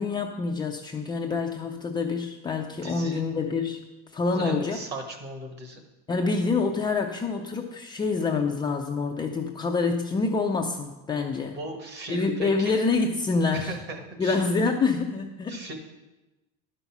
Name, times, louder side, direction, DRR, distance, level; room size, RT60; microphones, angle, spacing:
voice 1, 0.0-3.8 4.1-4.8 6.1-11.6 12.1-13.8 14.2-15.6, left 4 dB, 15° left, 1 dB, 0.5 m, -26 dB
voice 2, 2.8-3.2 4.3-5.8 11.5-12.8 13.5-14.4 15.5-15.7, right 2 dB, 35° right, 4 dB, 1.7 m, -37 dB
11.0 x 5.5 x 6.0 m, 1.1 s
cardioid pair, 155°, 29 cm